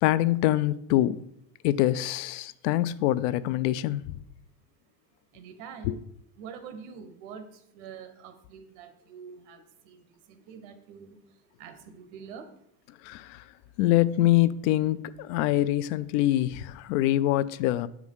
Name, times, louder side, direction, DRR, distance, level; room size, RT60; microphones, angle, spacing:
voice 1, 0.0-1.2 1.6-4.2 5.8-6.0 13.0-13.5 13.8-17.9, left 14 dB, 70° left, 0.5 m, -25 dB
voice 2, 5.3-6.0 6.4-7.4 7.7-10.0 10.3-11.2 11.6-12.4, right 6 dB, 70° right, 1.3 m, -45 dB
8.3 x 4.8 x 5.5 m
cardioid pair, 150°, 37 cm